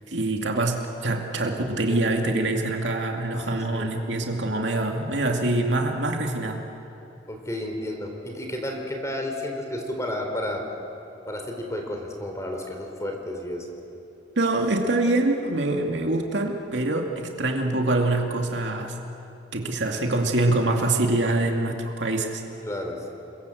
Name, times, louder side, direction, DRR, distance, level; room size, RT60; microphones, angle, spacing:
voice 1, 0.1-6.7 14.4-18.9 19.5-22.4, right 2 dB, 85° right, 2 dB, 2.4 m, -25 dB
voice 2, 3.4-3.9 7.3-10.6 11.3-13.7 22.7-23.1, left 1 dB, 15° left, 3 dB, 3.8 m, -32 dB
28.5 x 22.5 x 7.9 m, 2.9 s
head